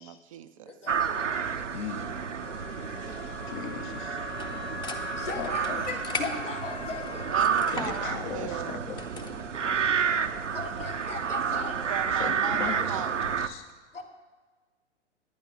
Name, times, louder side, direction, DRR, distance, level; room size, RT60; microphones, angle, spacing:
voice 1, 0.0-0.7 2.3-3.0 7.3-8.9 11.9-13.3, right 11 dB, 30° right, 10 dB, 0.5 m, -38 dB
voice 2, 0.6-2.0 4.5-4.6 5.0-7.3 10.5-11.8 13.9-14.0, left 3 dB, 80° left, -1 dB, 3.2 m, -39 dB
sound 1, 0.9-13.5, right 7 dB, 80° right, 0.8 m, -30 dB
voice 3, 1.7-2.1 3.5-4.2 5.4-5.8 7.7-9.0 12.1-13.1 13.4-13.7, left 8 dB, 40° left, 9 dB, 0.8 m, -37 dB
Wind instrument woodwind instrument, 2.4-7.5, left 8 dB, 60° left, 1.1 m, -42 dB
sound 2, 4.3-9.5, left 4 dB, 10° left, 0.8 m, -40 dB
12.5 x 10.0 x 5.8 m, 1.4 s
figure-of-eight pair, 110°, 36 cm